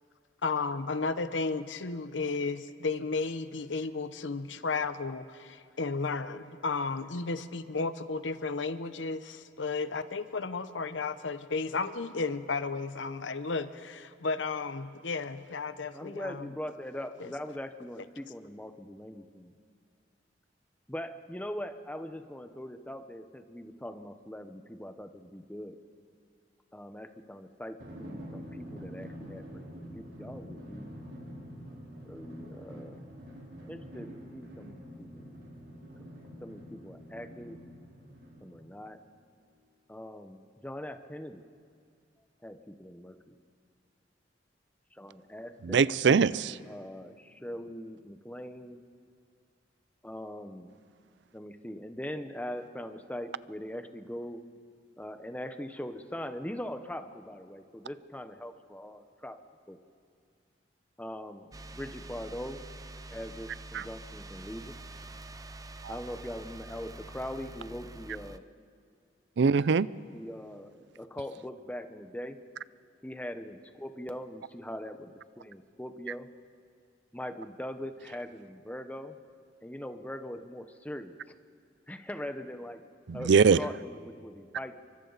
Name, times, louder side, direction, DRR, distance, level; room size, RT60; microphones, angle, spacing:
voice 1, 0.4-16.5 17.2-17.3, left 4 dB, 85° left, 12 dB, 0.9 m, -33 dB
voice 2, 15.9-19.5 20.9-25.8 26.7-30.9 32.0-33.1 33.7-35.3 36.4-37.6 38.4-39.0 39.9-41.5 42.4-43.3 44.9-46.0 46.7-48.8 50.0-50.7 51.3-54.4 55.0-59.4 59.7-59.8 61.0-62.6 63.1-64.8 65.9-68.4 70.1-72.4 73.0-76.3 77.1-79.2 79.6-81.4 81.9-82.9 83.1-83.3 83.6-84.8, left 1 dB, 10° left, 8 dB, 0.9 m, -41 dB
Drum, 27.8-38.8, equal, 85° right, 4.2 m, -46 dB
voice 3, 45.6-46.6 63.7-63.8 65.8-65.9 69.4-69.9 83.1-83.6, right 5 dB, 70° right, 19 dB, 0.4 m, -22 dB
sound 1, 61.5-68.4, right 2 dB, 20° right, 0.6 m, -46 dB
29.0 x 24.0 x 4.1 m, 2.2 s
head